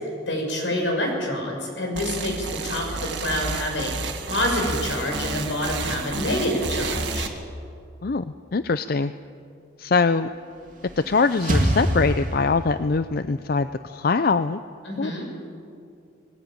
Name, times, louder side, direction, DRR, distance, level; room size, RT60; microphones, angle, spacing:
voice 1, 0.3-3.9 4.3-7.3 14.8-15.2, left 1 dB, 80° left, 1 dB, 6.4 m, -27 dB
sound 1, 1.9-7.3, right 3 dB, 70° right, 1.9 m, -30 dB
voice 2, 8.5-9.1 9.8-10.3 11.1-14.6 15.0-15.2, left 4 dB, 55° left, 12 dB, 0.5 m, -23 dB
sound 2, 10.5-12.9, equal, 45° right, 2.8 m, -26 dB
20.0 x 19.0 x 9.0 m, 2.4 s
head